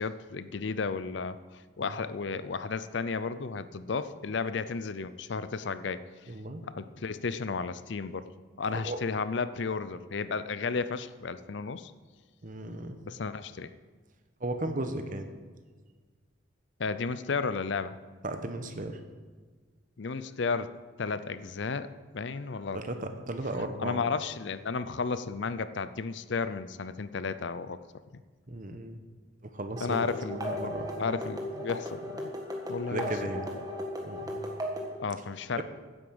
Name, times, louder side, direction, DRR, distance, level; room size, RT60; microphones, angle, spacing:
voice 1, 0.0-1.4 1.8-6.0 6.7-8.3 8.6-11.9 13.1-13.7 16.8-17.9 20.0-20.7 21.0-21.9 22.1-22.8 23.8-27.8 29.8-30.7 31.0-32.3 32.7-33.1 35.0-35.6, left 4 dB, 65° left, 13 dB, 0.5 m, -33 dB
voice 2, 6.3-6.6 8.8-9.0 12.4-13.0 14.4-15.3 18.2-19.0 22.7-24.0 28.5-29.0 29.4-31.1 32.9-33.5 34.0-34.5 35.6-35.7, right 1 dB, 45° right, 7 dB, 1.1 m, -36 dB
sound 1, 29.8-34.9, equal, 20° right, 1.7 m, -36 dB
10.0 x 8.4 x 7.8 m, 1.5 s
head